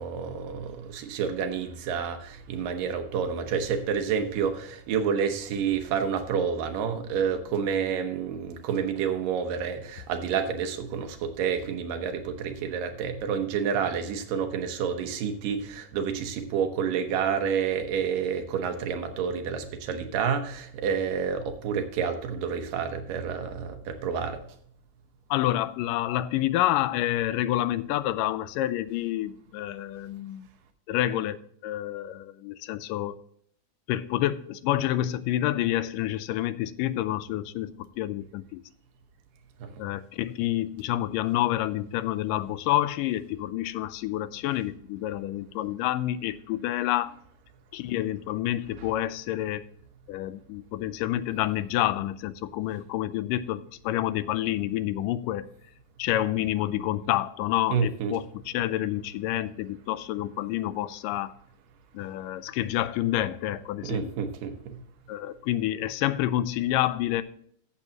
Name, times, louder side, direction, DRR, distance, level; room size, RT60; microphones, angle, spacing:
voice 1, 0.0-24.4 39.6-39.7 48.8-48.9 57.7-58.2 63.8-64.8, right 7 dB, 80° right, 6 dB, 2.7 m, -29 dB
voice 2, 25.3-30.5 30.9-33.2 33.9-38.6 39.8-47.1 47.7-49.6 50.1-55.5 56.0-61.3 61.9-64.1 65.1-67.2, left 14 dB, 80° left, 15 dB, 2.1 m, -28 dB
14.5 x 7.0 x 2.9 m, 0.64 s
omnidirectional pair, 3.9 m